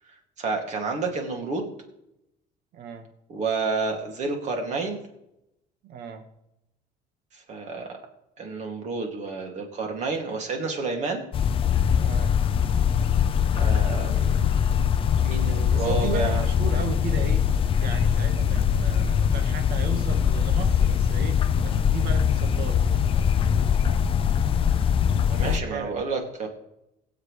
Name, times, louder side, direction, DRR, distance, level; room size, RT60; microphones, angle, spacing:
voice 1, 0.4-1.7 3.3-5.0 7.3-8.0 8.4-11.2 13.5-14.8 15.2-16.4 25.4-26.5, right 3 dB, 40° right, 2 dB, 2.5 m, -30 dB
voice 2, 2.7-3.1 5.8-6.2 12.0-12.3 15.7-17.4 17.8-22.8 25.2-26.1, right 7 dB, 65° right, 6 dB, 1.6 m, -35 dB
sound 1, 11.3-25.6, left 8 dB, 30° left, 0.5 m, -22 dB
22.0 x 8.0 x 3.3 m, 0.86 s
cardioid pair, 170°, 18 cm